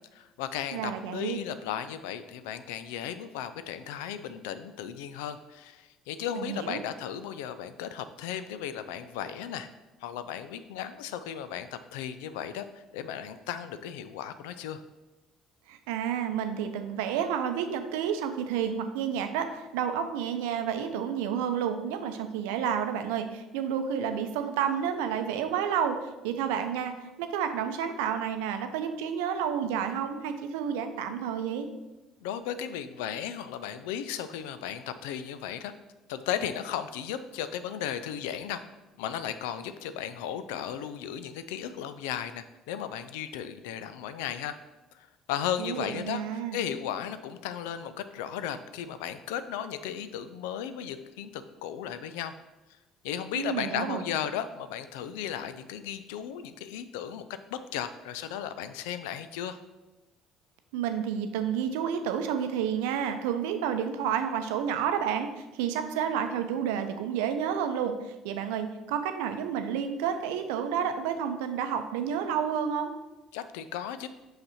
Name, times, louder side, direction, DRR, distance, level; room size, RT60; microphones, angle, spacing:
voice 1, 0.1-9.7 10.0-14.8 32.2-35.7 36.1-38.6 39.0-44.5 44.9-52.3 53.0-59.6 73.3-74.1, left 9 dB, 75° left, 11 dB, 0.4 m, -35 dB
voice 2, 0.7-1.4 6.3-6.8 15.7-31.7 45.6-46.6 53.3-54.0 60.7-65.3 65.6-68.0 68.2-72.9, right 8 dB, 75° right, 7 dB, 0.6 m, -30 dB
5.9 x 5.3 x 4.2 m, 1.1 s
hypercardioid pair, 60°, 0 cm